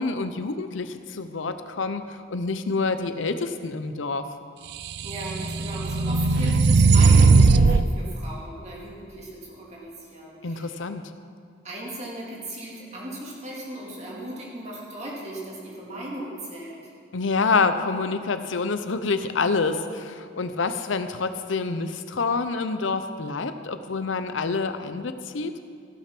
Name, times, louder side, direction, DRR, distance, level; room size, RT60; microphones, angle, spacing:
voice 1, 0.0-4.3 10.4-11.0 17.1-25.5, left 4 dB, 80° left, 10 dB, 0.7 m, -27 dB
sound 1, 4.9-7.9, right 4 dB, 55° right, 0.4 m, -17 dB
voice 2, 5.0-10.8 11.6-16.8, right 1 dB, 35° right, -4 dB, 2.4 m, -37 dB
15.0 x 6.7 x 6.0 m, 2.3 s
head